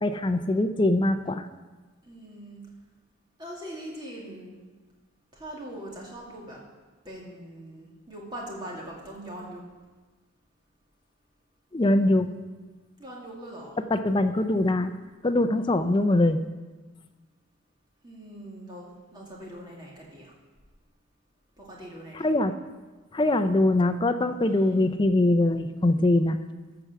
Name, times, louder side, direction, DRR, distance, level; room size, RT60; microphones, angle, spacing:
voice 1, 0.0-1.5 11.7-12.3 13.9-14.9 15.2-16.4 22.1-22.5 23.1-26.4, left 1 dB, 20° left, 9 dB, 0.4 m, -22 dB
voice 2, 2.0-2.6 3.4-4.6 5.3-6.6 7.0-9.6 13.0-13.8 15.5-16.1 18.0-20.3 21.6-22.3 24.4-24.9, right 1 dB, 20° right, -3 dB, 2.1 m, -42 dB
13.5 x 4.7 x 7.1 m, 1.3 s
head